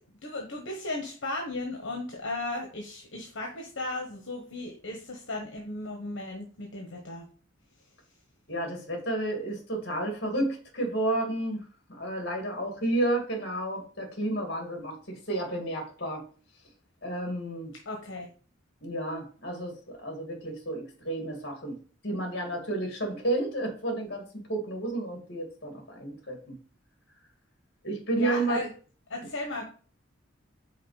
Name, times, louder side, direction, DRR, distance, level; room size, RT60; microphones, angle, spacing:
voice 1, 0.2-7.3 17.8-18.3 28.2-28.7 29.1-29.6, left 2 dB, 75° left, 1 dB, 1.2 m, -35 dB
voice 2, 8.5-11.6 11.9-16.2 17.0-17.7 18.8-21.8 22.0-26.5 27.8-28.6, right 1 dB, 55° left, 2 dB, 2.1 m, -31 dB
5.7 x 4.1 x 4.9 m, 0.41 s
head